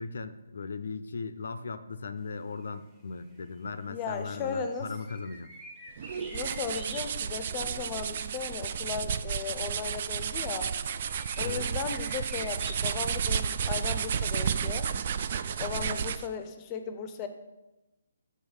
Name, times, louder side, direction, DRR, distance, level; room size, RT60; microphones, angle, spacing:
voice 1, 0.0-5.5 11.4-11.7 15.6-15.9, left 4 dB, 65° left, 12 dB, 0.5 m, -38 dB
sound 1, 2.5-2.6 3.2-3.6 4.0-7.7 8.4-8.5 9.3-15.1, right 1 dB, 15° right, 1.1 m, -49 dB
voice 2, 3.9-4.9 6.3-10.7 11.4-14.9 15.6-17.3, left 6 dB, 25° left, 8 dB, 0.6 m, -36 dB
sound 2, 6.0-16.4, right 7 dB, 45° right, 0.3 m, -32 dB
6.6 x 5.4 x 4.9 m, 1.0 s
figure-of-eight pair, 150°, 0 cm